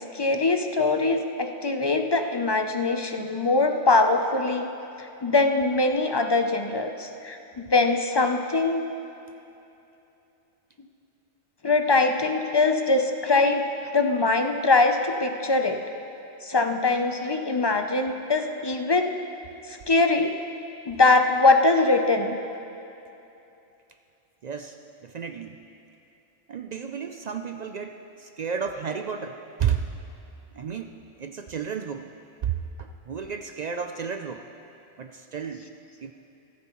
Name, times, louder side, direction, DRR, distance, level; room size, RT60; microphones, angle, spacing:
voice 1, 0.1-4.7 5.0-8.9 11.6-13.7 13.9-15.8 16.4-19.1 19.7-20.3 20.9-22.4, left 3 dB, 35° left, 5 dB, 0.4 m, -22 dB
voice 2, 24.4-24.8 25.0-25.6 26.5-29.9 30.5-32.1 32.4-34.5 35.0-35.7 36.0-36.1, right 7 dB, 60° right, 6 dB, 0.4 m, -32 dB
24.0 x 9.2 x 3.0 m, 2.8 s
omnidirectional pair, 1.2 m